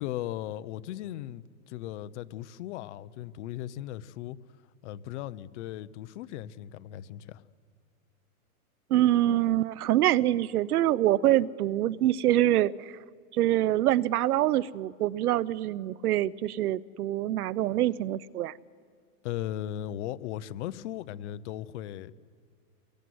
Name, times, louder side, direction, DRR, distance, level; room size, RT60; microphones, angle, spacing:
voice 1, 0.0-4.4 4.8-7.4 19.2-22.1, left 13 dB, 50° left, 1.0 m, -37 dB
voice 2, 8.9-12.9 13.3-18.5, right 13 dB, 85° right, 0.8 m, -25 dB
24.5 x 22.0 x 9.5 m
supercardioid pair, 150°, 44 cm